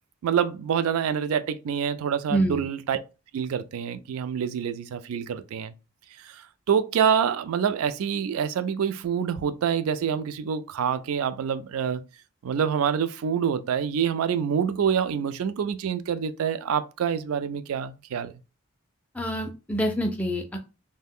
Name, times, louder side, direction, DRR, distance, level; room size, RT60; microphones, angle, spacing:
voice 1, 0.2-3.0 3.3-5.7 6.2-12.0 12.4-18.3, right 7 dB, 75° right, 0.3 m, -26 dB
voice 2, 2.3-2.7 19.1-20.6, right 1 dB, 5° left, 0.3 m, -26 dB
2.4 x 2.1 x 3.5 m
head